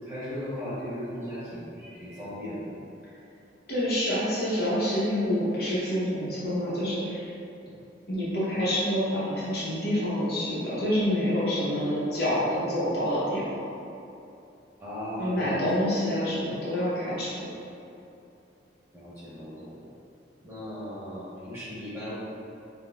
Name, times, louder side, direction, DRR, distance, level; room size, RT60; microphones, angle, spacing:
voice 1, 0.0-2.7 14.8-15.6 18.9-19.8 20.4-22.1, equal, 15° right, -12 dB, 1.3 m, -37 dB
voice 2, 3.7-7.3 8.1-13.7 15.2-17.5, equal, 60° left, -9 dB, 0.9 m, -27 dB
4.9 x 2.2 x 2.3 m, 2.7 s
head